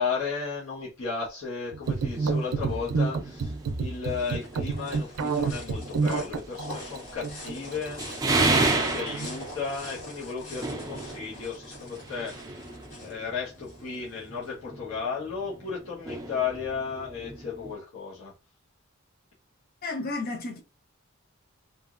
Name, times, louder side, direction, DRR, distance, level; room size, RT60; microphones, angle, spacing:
voice 1, 0.0-8.0 8.4-12.6 13.0-18.3, left 5 dB, 70° left, 1.0 m, -34 dB
sound 1, 1.7-9.4, right 4 dB, 85° right, 0.4 m, -29 dB
sound 2, 1.8-17.7, right 3 dB, 15° right, 0.4 m, -34 dB
sound 3, 3.7-14.5, left 1 dB, 90° left, 1.5 m, -44 dB
voice 2, 19.8-20.6, left 2 dB, 40° left, 0.6 m, -32 dB
3.0 x 2.6 x 2.4 m
head